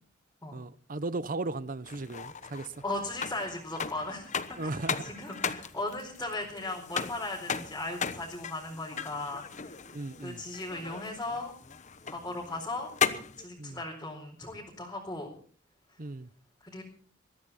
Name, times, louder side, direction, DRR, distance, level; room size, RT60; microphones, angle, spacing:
voice 1, 0.5-2.7 4.6-5.1 9.9-10.4 13.6-13.8 16.0-16.3, right 2 dB, 45° right, 0.8 m, -36 dB
sound 1, 1.9-13.4, left 6 dB, 40° left, 1.1 m, -37 dB
voice 2, 2.8-4.3 4.6-9.8 10.2-11.5 12.1-12.9 13.4-15.3 16.6-16.8, left 2 dB, 15° left, 4.3 m, -37 dB
22.0 x 14.5 x 4.2 m
head